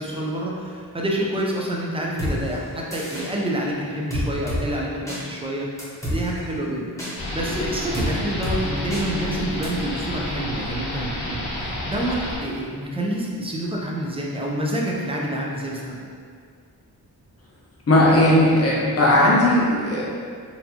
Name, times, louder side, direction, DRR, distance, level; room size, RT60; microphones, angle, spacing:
voice 1, 0.0-5.7 6.1-6.9 7.3-16.0, right 1 dB, 15° right, -3 dB, 0.5 m, -27 dB
sound 1, 2.2-2.3 2.9-3.3 4.1-4.6 5.1-5.2 5.8-6.2 7.0-7.1 7.9-8.1 8.4-8.6 8.9-9.0 9.6-9.7, left 1 dB, 10° left, 0.9 m, -27 dB
sound 2, 7.2-12.4, left 1 dB, 75° left, 0.9 m, -30 dB
voice 2, 17.9-20.0, left 1 dB, 40° left, -6 dB, 0.8 m, -17 dB
4.3 x 2.7 x 2.8 m, 2.1 s
wide cardioid pair, 140°, 39 cm